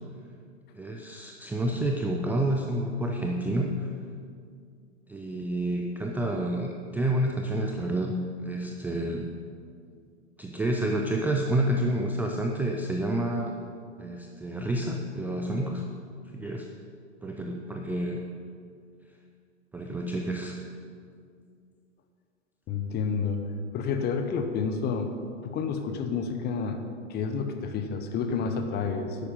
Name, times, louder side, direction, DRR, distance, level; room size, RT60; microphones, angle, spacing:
voice 1, 0.7-3.9 5.1-9.3 10.4-13.5 14.0-15.9 16.3-16.7 17.2-18.2 19.7-20.6, right 1 dB, 5° right, 1 dB, 0.4 m, -29 dB
voice 2, 22.7-23.4 23.7-25.1 25.4-26.8 27.1-29.3, left 5 dB, 25° left, 6 dB, 1.0 m, -29 dB
10.5 x 8.3 x 5.4 m, 2.2 s
figure-of-eight pair, 100°, 36 cm